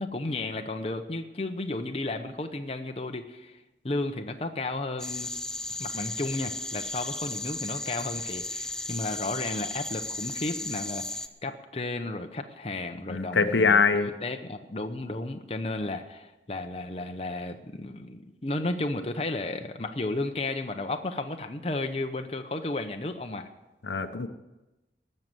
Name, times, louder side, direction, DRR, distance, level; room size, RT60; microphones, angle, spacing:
voice 1, 0.0-5.4 5.7-23.5, left 2 dB, 35° left, 5 dB, 0.8 m, -33 dB
sound 1, 5.0-11.3, left 2 dB, 5° left, 0.4 m, -35 dB
voice 2, 13.1-14.1 23.8-24.3, left 5 dB, 85° left, 9 dB, 0.9 m, -23 dB
18.5 x 6.6 x 7.7 m, 1.0 s
head